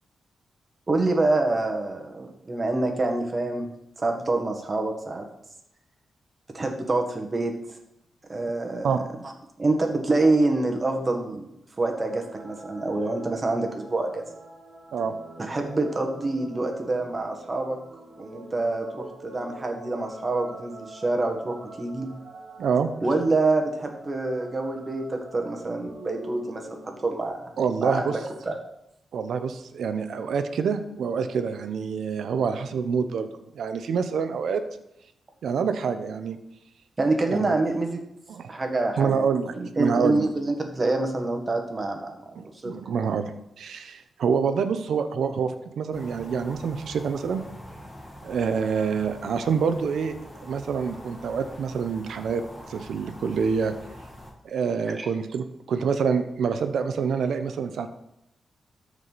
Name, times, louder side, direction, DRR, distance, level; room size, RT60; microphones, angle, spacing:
voice 1, 0.9-3.7 4.0-5.2 6.5-7.5 8.3-9.0 9.2-9.3 9.6-11.5 11.8-14.2 15.4-17.8 18.2-22.1 23.0-27.5 27.8-28.2 28.4-28.5 37.0-38.0 38.5-42.1 42.6-42.7 54.9-55.1, right 2 dB, 30° right, 3 dB, 1.6 m, -26 dB
sound 1, 11.8-27.3, right 1 dB, 55° right, 1.9 m, -45 dB
voice 2, 22.6-22.9 27.6-28.1 29.1-33.3 33.5-34.6 35.4-36.4 37.3-37.6 38.3-38.5 39.0-40.3 42.4-47.4 48.2-50.1 50.4-52.4 52.7-53.7 54.4-57.9, right 6 dB, 80° right, 9 dB, 0.7 m, -26 dB
sound 2, 45.9-54.3, equal, 15° left, 2.0 m, -44 dB
13.0 x 4.8 x 4.1 m, 0.82 s
cardioid pair, 105°, 0 cm